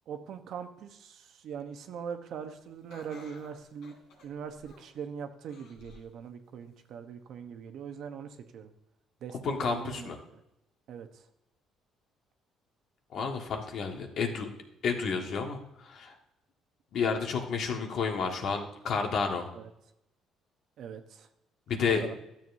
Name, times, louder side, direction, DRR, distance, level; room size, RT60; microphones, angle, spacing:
voice 1, 0.1-3.9 4.2-8.7 9.2-10.4 10.9-11.2 19.5-19.7 20.8-21.3 21.8-22.1, right 7 dB, 65° right, 7 dB, 0.9 m, -41 dB
Laughter, 2.9-5.0 5.5-6.1 6.6-6.7 7.7-7.8, left 2 dB, 80° left, 3.3 m, -54 dB
voice 2, 9.4-10.2 13.1-14.5 14.8-16.1 16.9-19.5 21.7-22.0, left 5 dB, 60° left, 3 dB, 1.5 m, -31 dB
12.5 x 7.3 x 2.7 m, 0.86 s
cardioid pair, 100°, 0 cm